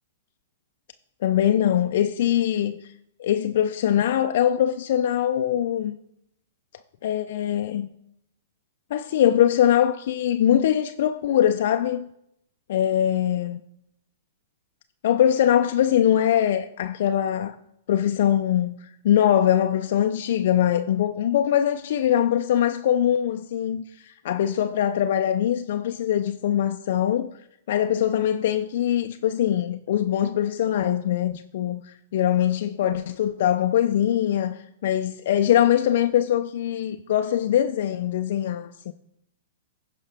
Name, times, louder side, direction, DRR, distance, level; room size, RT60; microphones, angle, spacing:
voice 1, 1.2-2.8 3.2-6.0 7.0-7.9 8.9-12.1 12.7-13.6 15.0-17.6 17.9-18.8 19.0-27.3 27.7-31.8 32.1-38.9, left 10 dB, 60° left, 0.5 m, -22 dB
15.0 x 5.4 x 3.5 m
hypercardioid pair, 110°, 0 cm